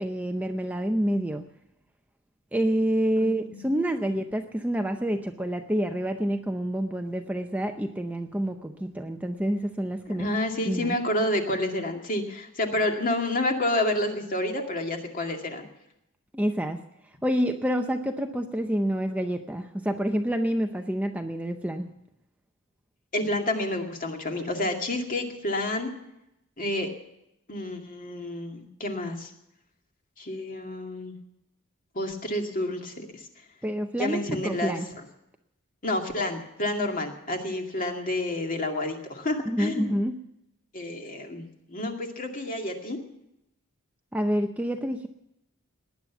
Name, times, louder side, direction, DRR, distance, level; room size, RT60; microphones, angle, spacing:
voice 1, 0.0-1.4 2.5-10.3 10.7-11.0 16.3-16.8 17.2-21.9 33.6-34.9 39.5-40.2 44.1-45.1, equal, 5° right, 5 dB, 0.6 m, -28 dB
voice 2, 3.2-3.6 10.1-15.6 23.1-25.9 26.6-26.9 27.5-29.3 30.2-31.1 31.9-33.3 33.9-34.8 35.8-39.9 40.7-43.0, left 1 dB, 40° left, 3 dB, 2.2 m, -29 dB
19.0 x 10.5 x 7.1 m, 0.85 s
head